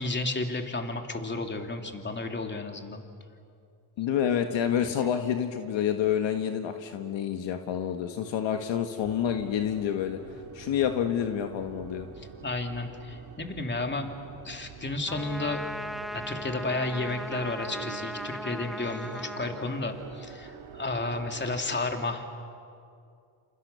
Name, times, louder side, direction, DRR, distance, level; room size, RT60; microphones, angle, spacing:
voice 1, 0.0-3.0 12.4-14.1 14.4-15.6 16.1-22.2, left 2 dB, 20° left, 4 dB, 3.1 m, -32 dB
voice 2, 4.0-10.2 10.5-12.1, left 9 dB, 65° left, 6 dB, 1.7 m, -28 dB
sound 1, 9.0-21.6, right 6 dB, 80° right, 3.6 m, -46 dB
Trumpet, 15.1-20.3, equal, ahead, 1.0 m, -38 dB
28.5 x 28.0 x 7.0 m, 2.4 s
supercardioid pair, 85°, 49 cm